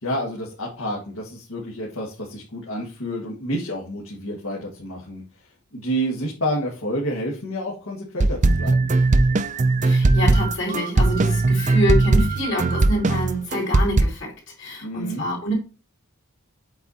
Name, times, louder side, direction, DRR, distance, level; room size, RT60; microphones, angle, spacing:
voice 1, 0.0-5.2 5.7-8.9 14.8-15.3, equal, 75° left, -3 dB, 1.7 m, -29 dB
sound 1, 8.2-14.0, right 2 dB, 35° right, 0.4 m, -19 dB
voice 2, 9.8-14.3 14.6-15.5, equal, 55° left, -1 dB, 2.8 m, -26 dB
7.9 x 4.3 x 4.1 m, 0.34 s
head